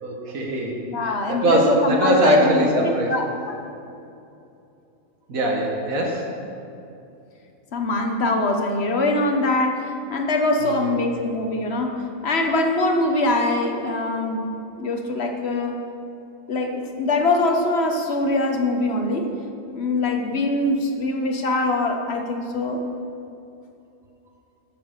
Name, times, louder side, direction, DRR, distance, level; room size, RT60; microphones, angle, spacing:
voice 1, 0.0-3.1 5.3-6.3 10.6-10.9, right 1 dB, 80° right, 0 dB, 2.0 m, -22 dB
voice 2, 0.9-3.6 7.7-14.4 14.7-15.8 16.5-19.3 19.7-22.8, left 2 dB, 50° left, 4 dB, 1.3 m, -23 dB
11.5 x 7.1 x 6.6 m, 2.7 s
omnidirectional pair, 1.4 m